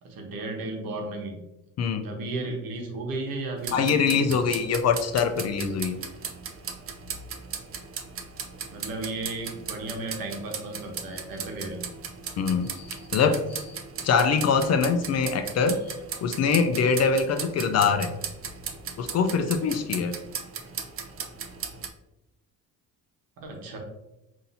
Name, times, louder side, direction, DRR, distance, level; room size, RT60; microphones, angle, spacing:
voice 1, 0.0-1.4 2.0-4.4 8.7-11.9 23.4-23.8, right 2 dB, 75° right, 2 dB, 1.1 m, -34 dB
sound 1, 3.6-21.9, right 6 dB, 40° right, 0.5 m, -37 dB
voice 2, 3.7-6.0 12.4-13.8 14.0-15.8 16.2-18.1 19.0-20.1, left 5 dB, 45° left, 7 dB, 0.5 m, -24 dB
5.4 x 2.8 x 2.6 m, 0.95 s
cardioid pair, 105°, 35 cm